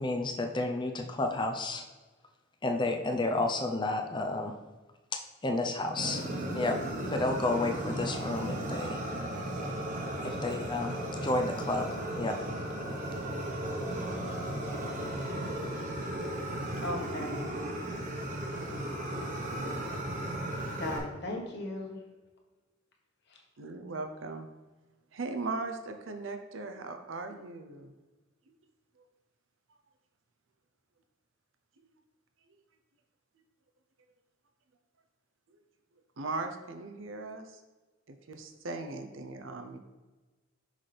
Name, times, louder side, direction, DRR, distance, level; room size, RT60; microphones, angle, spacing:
voice 1, 0.0-1.8 2.6-4.5 5.4-6.2 6.5-6.8 7.1-9.0 10.2-12.4 12.6-12.8, left 2 dB, 25° left, 3 dB, 0.6 m, -31 dB
Fire, 6.0-21.0, right 1 dB, 40° right, 1.2 m, -35 dB
voice 2, 16.8-17.5 20.8-22.0 23.3-23.4, left 1 dB, 60° left, 0 dB, 1.4 m, -37 dB
voice 3, 23.6-24.5 25.1-27.9 28.5-28.6 29.0-29.1 35.5-35.6 36.2-37.6 38.1-39.8, right 3 dB, 75° right, 6 dB, 0.6 m, -38 dB
6.3 x 5.7 x 3.3 m, 1.2 s
head